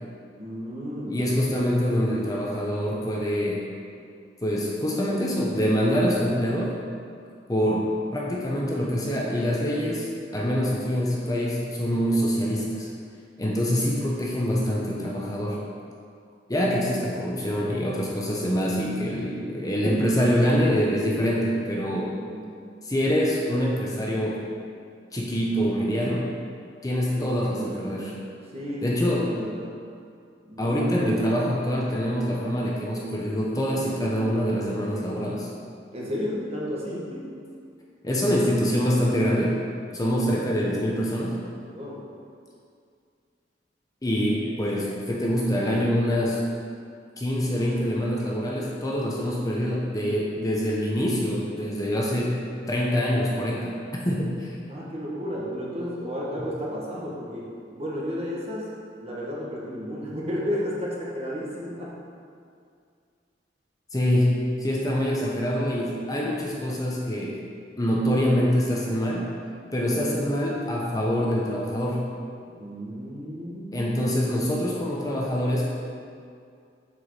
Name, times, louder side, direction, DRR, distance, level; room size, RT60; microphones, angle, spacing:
voice 1, 0.4-1.2 22.1-22.5 27.1-28.0 28.5-29.8 30.4-30.8 35.9-37.3 40.0-40.5 41.7-42.0 54.7-62.0 72.5-73.9, equal, 35° right, -4 dB, 1.6 m, -33 dB
voice 2, 1.1-3.6 4.4-6.8 7.5-12.9 13.4-15.6 16.5-22.2 22.8-24.4 25.1-26.3 26.8-28.1 28.8-29.3 30.6-35.5 38.0-39.6 39.9-41.4 44.0-46.4 47.2-52.4 52.7-54.6 63.9-64.3 64.6-67.4 67.8-69.3 69.7-72.1 73.7-75.7, equal, 20° left, -4 dB, 0.9 m, -25 dB
7.8 x 6.3 x 4.8 m, 2.3 s
head